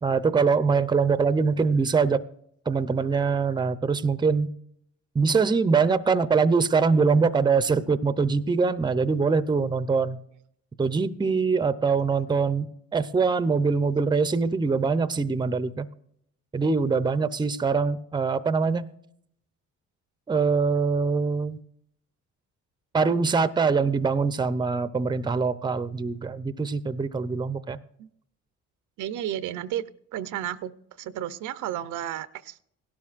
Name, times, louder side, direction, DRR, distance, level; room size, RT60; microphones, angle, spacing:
voice 1, 0.0-2.2 2.7-4.5 5.1-10.2 10.8-12.7 12.9-15.9 16.5-18.9 20.3-21.6 22.9-27.8, right 5 dB, 15° right, 14 dB, 0.5 m, -23 dB
voice 2, 29.0-29.8 30.1-30.7 31.0-32.6, right 11 dB, 80° right, 14 dB, 0.6 m, -32 dB
17.0 x 12.0 x 2.4 m, 0.70 s
cardioid pair, 90°, 30 cm